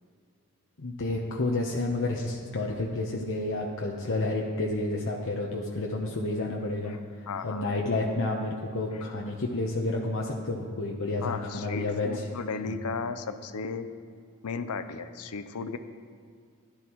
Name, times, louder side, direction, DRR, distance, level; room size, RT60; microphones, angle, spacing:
voice 1, 0.8-12.3 12.7-12.8, left 2 dB, 60° left, -1 dB, 0.9 m, -30 dB
voice 2, 7.3-7.7 11.2-13.9 14.4-15.8, left 4 dB, 85° left, 11 dB, 0.6 m, -35 dB
16.0 x 11.5 x 3.1 m, 2.2 s
head